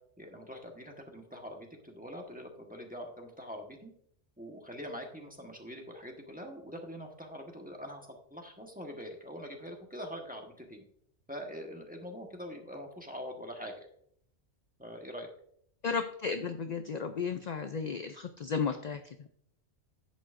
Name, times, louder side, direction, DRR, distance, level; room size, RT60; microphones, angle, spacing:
voice 1, 0.2-3.9 4.4-10.8 11.3-13.9 14.8-15.3, equal, 5° right, 1 dB, 1.2 m, -44 dB
voice 2, 15.8-19.3, left 5 dB, 55° left, 8 dB, 0.5 m, -34 dB
10.5 x 8.5 x 2.5 m, 0.65 s
omnidirectional pair, 1.2 m